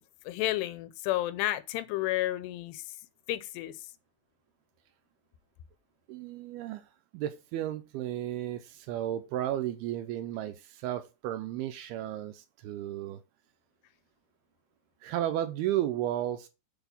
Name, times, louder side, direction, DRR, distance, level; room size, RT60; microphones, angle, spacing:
voice 1, 0.3-2.8 3.3-3.8, left 15 dB, 85° left, 2.7 m, -31 dB
voice 2, 6.1-6.9 7.1-13.2 15.0-16.5, right 12 dB, 80° right, 2.4 m, -33 dB
8.1 x 4.3 x 5.4 m
omnidirectional pair, 4.9 m